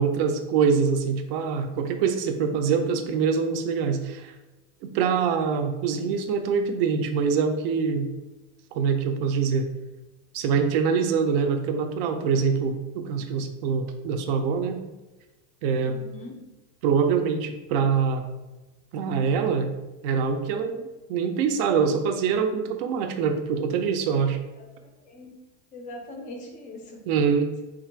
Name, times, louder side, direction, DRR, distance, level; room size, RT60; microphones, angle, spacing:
voice 1, 0.0-4.3 4.8-8.1 8.7-9.7 10.3-14.8 15.6-16.0 16.8-18.3 18.9-19.7 20.0-24.4 27.1-27.5, right 6 dB, 50° right, 6 dB, 0.5 m, -24 dB
voice 2, 15.8-16.5 24.6-24.7 25.1-25.3 25.7-27.0, left 1 dB, 20° left, 2 dB, 0.4 m, -41 dB
3.9 x 2.5 x 4.4 m, 1.1 s
cardioid pair, 180°, 38 cm